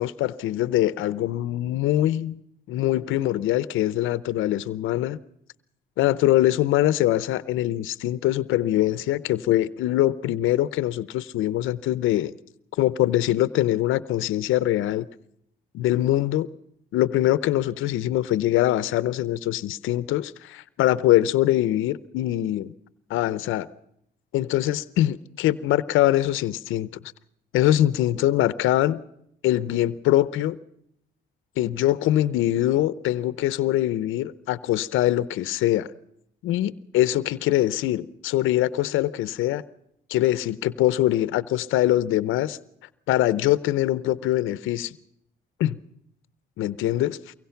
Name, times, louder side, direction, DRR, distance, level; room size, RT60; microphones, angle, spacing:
voice 1, 0.0-2.4 2.7-5.2 6.0-12.3 12.8-15.1 15.7-16.5 16.9-22.7 23.1-23.7 24.3-26.9 27.5-29.0 29.4-30.6 31.6-35.9 36.4-39.6 40.1-42.6 43.1-45.0 45.6-45.8 46.6-47.3, left 14 dB, 90° left, 0.7 m, -23 dB
24.0 x 22.5 x 5.7 m
cardioid pair, 90°, 20 cm